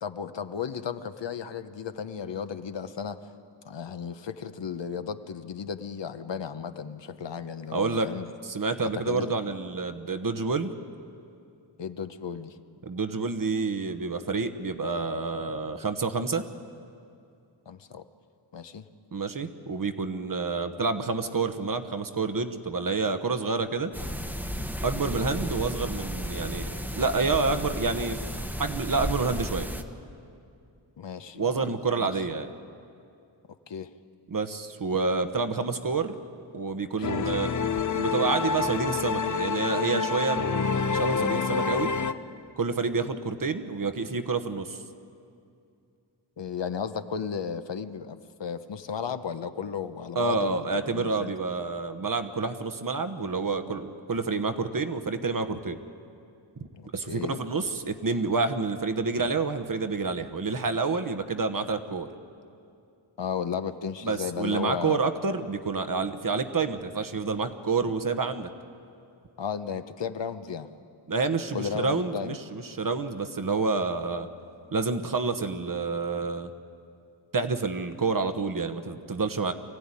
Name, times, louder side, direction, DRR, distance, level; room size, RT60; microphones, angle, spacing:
voice 1, 0.0-3.2 3.6-8.3 8.9-9.3 11.8-12.6 17.7-18.0 18.5-18.8 25.1-25.3 31.0-32.2 33.7-33.9 37.0-37.5 46.4-51.3 56.7-57.4 63.2-65.0 69.4-70.7 71.5-72.4, left 7 dB, 60° left, 10 dB, 1.0 m, -35 dB
voice 2, 7.7-8.1 8.4-10.7 12.8-16.4 19.1-23.9 24.8-28.2 28.6-29.7 31.4-32.5 34.3-36.2 36.5-37.5 38.0-40.5 40.9-41.9 42.6-44.8 50.1-55.8 56.9-62.1 64.0-68.5 71.1-74.3 74.7-76.5 77.3-79.5, right 4 dB, 45° right, 9 dB, 1.2 m, -28 dB
sound 1, 23.9-29.8, equal, 5° right, 1.1 m, -33 dB
sound 2, 37.0-42.1, left 5 dB, 40° left, 0.7 m, -27 dB
24.0 x 15.5 x 9.8 m, 2.5 s
wide cardioid pair, 110°, 48 cm